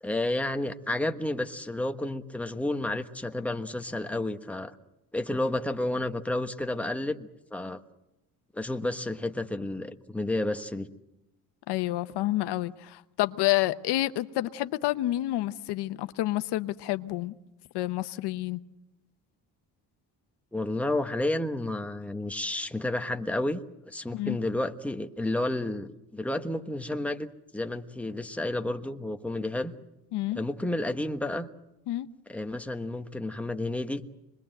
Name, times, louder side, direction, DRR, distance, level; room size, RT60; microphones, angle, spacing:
voice 1, 0.0-4.8 5.1-7.8 8.5-10.9 20.5-23.6 23.9-29.7 30.3-31.5 32.3-34.0, left 1 dB, 5° left, 1.3 m, -31 dB
voice 2, 11.7-17.3 17.7-18.6 24.1-24.4 30.1-30.4 31.9-32.1, left 16 dB, 80° left, 0.9 m, -29 dB
26.0 x 21.5 x 7.8 m
cardioid pair, 105°, 40 cm